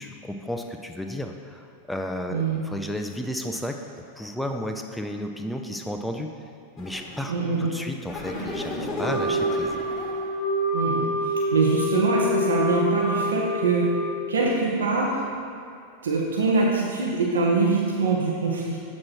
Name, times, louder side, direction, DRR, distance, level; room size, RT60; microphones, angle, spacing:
voice 1, 0.0-3.8 4.2-6.4 6.8-7.3 7.6-9.8, left 1 dB, 5° left, 3 dB, 0.5 m, -33 dB
voice 2, 2.3-2.6 7.3-7.7 10.7-11.1 11.5-13.9 14.3-15.2 16.0-18.8, right 4 dB, 70° right, -2 dB, 0.9 m, -23 dB
sound 1, 6.8-7.4 8.1-10.3, left 1 dB, 25° left, 1.3 m, -34 dB
Wind instrument woodwind instrument, 9.0-14.6, left 1 dB, 70° left, 1.1 m, -27 dB
7.4 x 4.3 x 4.6 m, 2.5 s
figure-of-eight pair, 90°, 0 cm